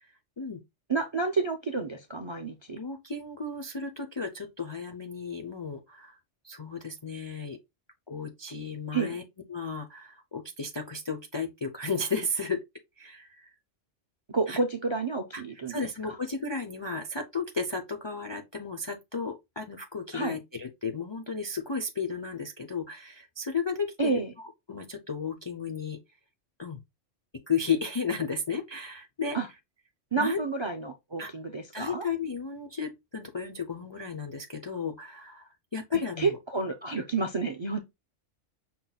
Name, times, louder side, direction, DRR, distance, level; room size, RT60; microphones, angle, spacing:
voice 1, 0.9-2.8 8.9-9.2 14.3-15.8 20.1-20.4 24.0-24.3 29.3-29.5 30.1-32.0 36.2-37.8, right 4 dB, 40° right, 0.4 m, -30 dB
voice 2, 2.7-6.2 6.4-7.6 8.1-9.2 9.5-12.6 13.0-13.5 14.5-14.6 15.3-15.4 15.7-24.1 24.4-26.0 26.6-26.8 27.5-29.4 30.2-30.4 31.2-31.3 31.7-36.4, left 4 dB, 40° left, 0.3 m, -34 dB
5.8 x 2.2 x 4.0 m
omnidirectional pair, 1.3 m